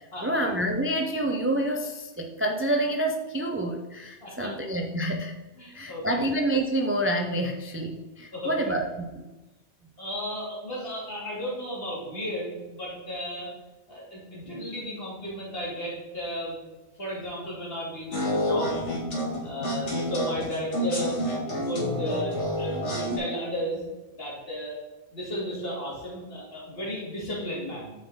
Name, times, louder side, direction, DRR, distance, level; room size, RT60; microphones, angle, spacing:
voice 1, 0.0-5.3 5.7-9.2, right 1 dB, 15° right, 3 dB, 0.4 m, -28 dB
voice 2, 4.2-4.5 5.6-6.1 8.3-8.7 10.0-13.5 13.9-16.6 17.0-18.8 19.4-21.2 21.5-23.8 24.1-24.8 25.1-27.9, equal, 55° left, -5 dB, 2.9 m, -34 dB
sound 1, 18.1-23.2, left 1 dB, 80° left, 2.4 m, -29 dB
8.9 x 5.0 x 3.9 m, 1.1 s
omnidirectional pair, 1.2 m